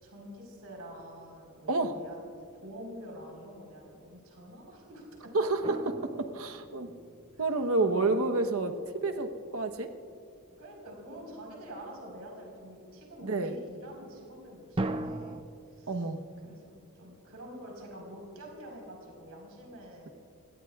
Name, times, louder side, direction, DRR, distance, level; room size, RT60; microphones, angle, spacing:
voice 1, 0.0-5.3 7.3-7.5 10.6-15.4 15.7-16.1 16.4-20.1, equal, 85° right, -1 dB, 4.2 m, -47 dB
voice 2, 5.3-6.9 7.4-9.9 13.2-13.6 15.9-16.2, right 3 dB, 65° right, 6 dB, 1.0 m, -29 dB
sound 1, 5.6-7.7 14.8-15.4, right 2 dB, 25° right, 0.5 m, -36 dB
29.0 x 17.5 x 2.4 m, 2.4 s
head